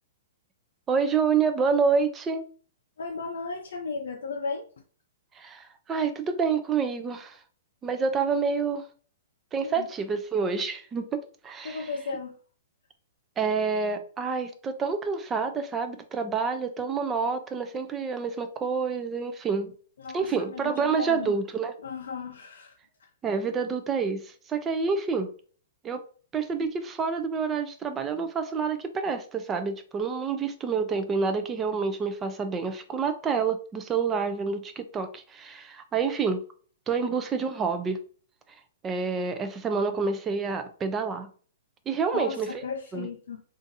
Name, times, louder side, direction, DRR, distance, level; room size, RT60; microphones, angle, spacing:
voice 1, 0.9-2.4 5.4-7.4 7.8-8.8 9.5-11.0 11.4-11.8 13.4-19.7 20.1-21.7 23.2-25.3 25.8-26.0 26.3-36.4 36.9-38.0 38.8-41.3 41.9-42.5 42.9-43.1, right 5 dB, 15° right, 0.4 m, -28 dB
voice 2, 3.0-4.7 9.6-9.9 11.6-12.4 20.0-21.4 21.8-23.1 42.1-43.4, left 4 dB, 90° left, 0.4 m, -35 dB
3.8 x 2.4 x 2.6 m
hypercardioid pair, 160°, 0 cm